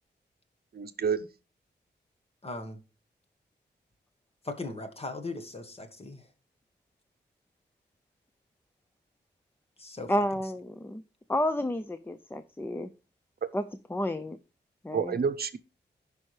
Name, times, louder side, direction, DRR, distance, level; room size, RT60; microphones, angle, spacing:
voice 1, 0.7-1.3 14.9-15.6, right 6 dB, 55° right, 0.8 m, -29 dB
voice 2, 2.4-2.8 4.4-6.2 9.8-10.1, left 2 dB, 30° left, 1.4 m, -38 dB
voice 3, 10.1-11.0 11.3-12.9 13.5-13.6 13.9-14.4 14.8-15.1, left 1 dB, 10° left, 0.4 m, -30 dB
15.0 x 5.4 x 3.2 m
wide cardioid pair, 165°, 19 cm